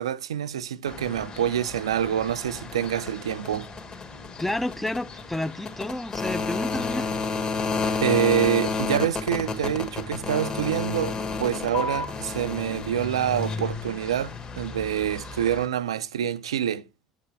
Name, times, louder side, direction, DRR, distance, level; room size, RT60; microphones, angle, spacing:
voice 1, 0.0-3.7 8.0-16.8, right 9 dB, 80° right, 0.4 m, -26 dB
sound 1, 0.9-15.6, left 4 dB, 30° left, 1.7 m, -32 dB
voice 2, 4.4-7.1, left 1 dB, 5° left, 0.5 m, -30 dB
7.8 x 4.8 x 3.2 m
hypercardioid pair, 65°, 3 cm